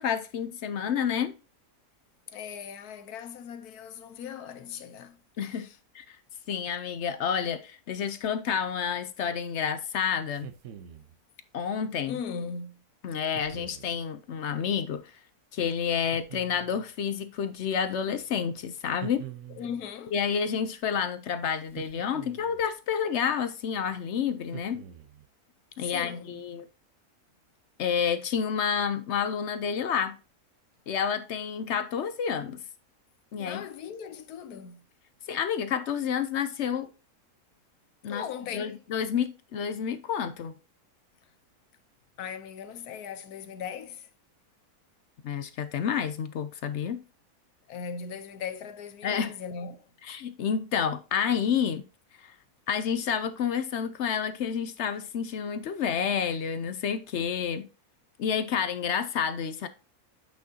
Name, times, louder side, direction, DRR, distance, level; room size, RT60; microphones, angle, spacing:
voice 1, 0.0-1.3 5.4-5.7 5.9-6.2 6.5-10.5 11.5-12.2 13.0-15.1 15.5-19.3 20.1-24.8 25.8-26.7 27.8-30.2 30.9-32.6 33.3-33.6 35.3-36.9 38.0-38.3 38.5-40.5 45.2-47.0 49.0-49.3 50.0-51.8 52.2-52.3 52.7-57.7 58.2-59.7, left 7 dB, 65° left, 0.7 m, -29 dB
voice 2, 2.3-5.2 5.5-5.8 12.1-12.8 19.5-20.1 25.8-26.4 33.4-34.8 38.1-38.8 42.2-44.1 47.7-49.9, left 7 dB, 85° left, 1.3 m, -38 dB
sound 1, 10.3-11.2 13.3-13.9 16.1-16.9 19.0-19.9 21.7-22.7 24.5-25.3, right 10 dB, 60° right, 1.0 m, -44 dB
8.5 x 6.1 x 2.7 m
omnidirectional pair, 1.6 m